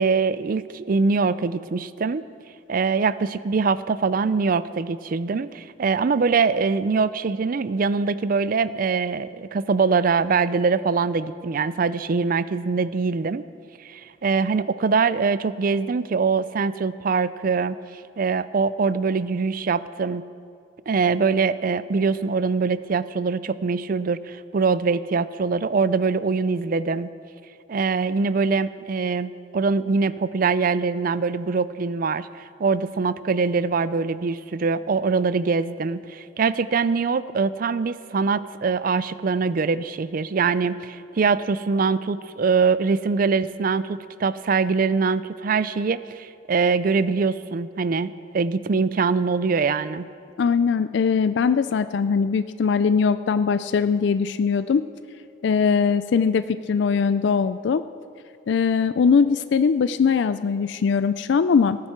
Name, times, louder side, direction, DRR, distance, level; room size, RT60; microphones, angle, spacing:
voice 1, 0.0-2.2 2.7-13.5 13.8-17.8 18.2-20.2 20.9-27.1 27.7-50.1, right 4 dB, 50° right, 16 dB, 0.4 m, -23 dB
voice 2, 50.4-54.8 55.4-57.8 58.5-61.8, left 5 dB, 65° left, 12 dB, 0.4 m, -21 dB
18.0 x 14.5 x 4.5 m, 2.4 s
head